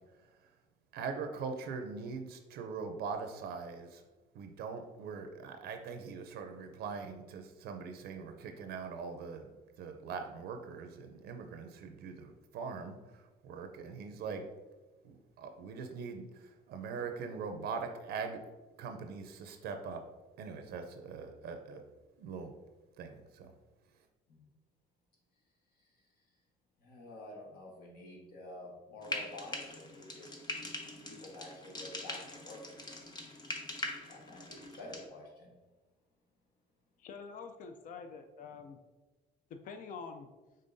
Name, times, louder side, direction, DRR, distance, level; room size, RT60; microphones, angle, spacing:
voice 1, 0.9-4.0 4.3-9.5 9.8-14.5 15.0-18.4 18.8-20.0 20.4-21.8 22.2-22.5 23.0-23.5, right 5 dB, 70° right, 6 dB, 0.5 m, -42 dB
voice 2, 26.8-32.7 34.1-35.5, left 1 dB, 65° left, -1 dB, 1.3 m, -49 dB
Frying (food), 29.0-35.0, left 2 dB, 25° left, 0.8 m, -42 dB
voice 3, 37.0-38.8 39.5-40.3, left 5 dB, 50° left, 7 dB, 0.5 m, -46 dB
5.4 x 3.8 x 2.6 m, 1.2 s
cardioid pair, 110°, 17 cm